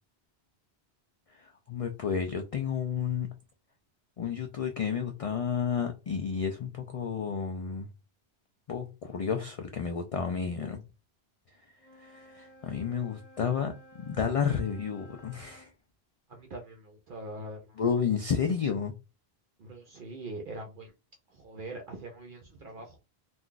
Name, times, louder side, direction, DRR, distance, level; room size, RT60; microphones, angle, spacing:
voice 1, 1.4-3.3 4.2-7.9 8.7-10.8 12.0-15.7 17.8-18.9, left 6 dB, 55° left, 0.3 m, -31 dB
Wind instrument woodwind instrument, 11.7-15.7, equal, 20° left, 1.0 m, -55 dB
voice 2, 16.3-17.8 19.6-20.9 21.3-23.0, right 2 dB, 60° right, 0.7 m, -43 dB
2.5 x 2.2 x 3.7 m
omnidirectional pair, 1.1 m